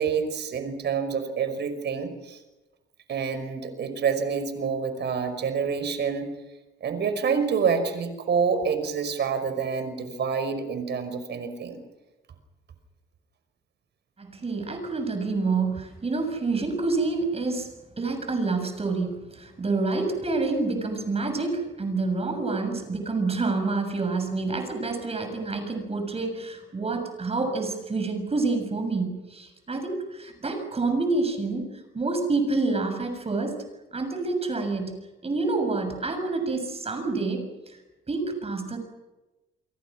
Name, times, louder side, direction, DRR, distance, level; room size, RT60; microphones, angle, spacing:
voice 1, 0.0-2.4 3.1-6.3 6.8-11.8, right 6 dB, 60° right, 9 dB, 5.5 m, -27 dB
voice 2, 14.2-17.7 18.0-31.7 31.9-33.6 33.9-34.9 35.2-37.4 38.1-38.8, right 3 dB, 30° right, 6 dB, 7.0 m, -28 dB
28.5 x 23.0 x 6.3 m, 1.1 s
cardioid pair, 90°, 20 cm